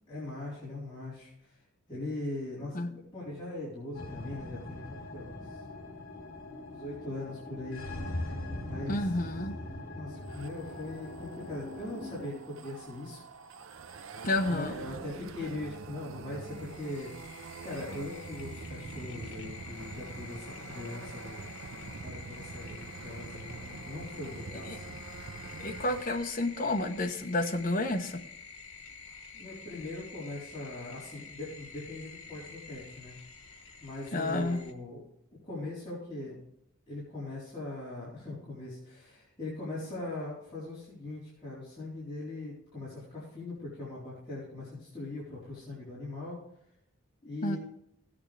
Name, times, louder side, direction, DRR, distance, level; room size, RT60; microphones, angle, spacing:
voice 1, 0.1-1.6 1.9-5.6 6.6-7.8 8.7-9.1 9.9-13.2 14.5-17.1 17.6-21.5 21.8-25.0 29.3-33.2 33.8-35.0 35.4-36.4 36.9-46.4 47.2-47.6, left 2 dB, 25° left, -11 dB, 4.0 m, -40 dB
sound 1, 3.9-12.3, left 1 dB, 65° left, 2.6 m, -41 dB
voice 2, 8.9-9.6 14.2-14.7 24.6-24.8 25.6-28.2 34.1-34.6 47.4-47.6, left 2 dB, 40° left, 4 dB, 1.0 m, -30 dB
sound 2, 10.2-26.0, right 4 dB, 65° right, 0.5 m, -45 dB
sound 3, 16.4-34.7, left 5 dB, 80° left, 1.3 m, -48 dB
16.0 x 8.7 x 3.3 m, 0.74 s
head